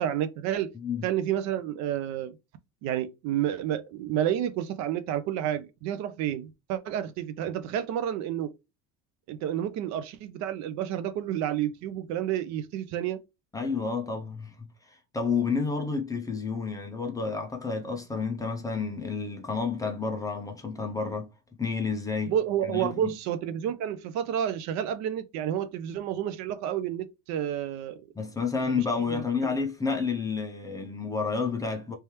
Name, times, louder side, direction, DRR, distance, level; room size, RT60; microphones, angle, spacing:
voice 1, 0.0-0.7 1.0-2.4 2.8-8.5 9.3-13.2 22.3-28.0 29.1-29.5, right 10 dB, 55° right, 0.5 m, -30 dB
voice 2, 0.7-1.1 13.5-14.6 14.8-21.3 21.6-22.3 22.6-23.1 28.2-31.9, left 5 dB, 10° left, 0.5 m, -30 dB
3.3 x 3.2 x 2.9 m
cardioid pair, 165°, 34 cm